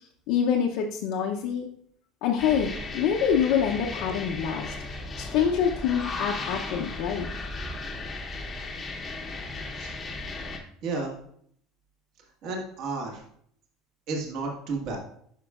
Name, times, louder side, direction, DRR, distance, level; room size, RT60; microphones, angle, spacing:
voice 1, 0.3-1.7 2.2-4.7 5.2-7.3, left 8 dB, 55° left, 0 dB, 0.7 m, -26 dB
sound 1, 2.4-10.6, left 2 dB, 20° left, 0.8 m, -36 dB
voice 2, 10.8-11.2 12.4-13.2 14.1-15.0, right 3 dB, 45° right, 0 dB, 1.5 m, -32 dB
10.0 x 6.0 x 2.4 m, 0.66 s
cardioid pair, 175°, 0 cm